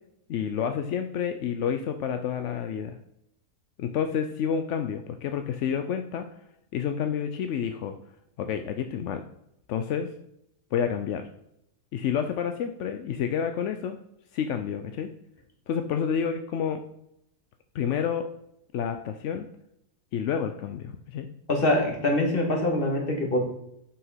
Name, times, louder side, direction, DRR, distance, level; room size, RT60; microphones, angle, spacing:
voice 1, 0.3-3.0 3.8-6.3 6.7-7.9 8.4-9.2 9.7-10.1 10.7-11.3 11.9-14.0 14.3-15.1 15.7-16.8 17.7-18.3 18.7-19.5 20.1-21.3, left 7 dB, 65° left, 7 dB, 0.8 m, -29 dB
voice 2, 21.5-23.4, left 1 dB, 35° left, 1 dB, 2.0 m, -24 dB
7.9 x 5.9 x 5.6 m, 0.78 s
omnidirectional pair, 1.7 m